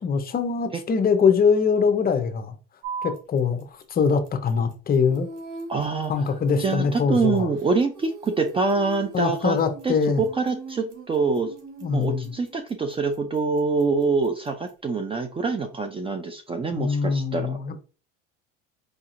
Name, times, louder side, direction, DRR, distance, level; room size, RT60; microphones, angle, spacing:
voice 1, 0.0-2.5 3.0-5.3 6.1-7.5 9.1-10.2 11.8-12.3 16.7-17.8, left 6 dB, 30° left, 0.7 m, -23 dB
sound 1, 2.8-14.8, right 6 dB, 85° right, 1.5 m, -44 dB
Female singing, 5.0-12.6, right 2 dB, 55° right, 1.3 m, -42 dB
voice 2, 5.7-9.6 9.8-11.5 11.9-17.6, right 4 dB, 20° right, 0.4 m, -25 dB
4.9 x 2.7 x 2.5 m
supercardioid pair, 100°, 30 cm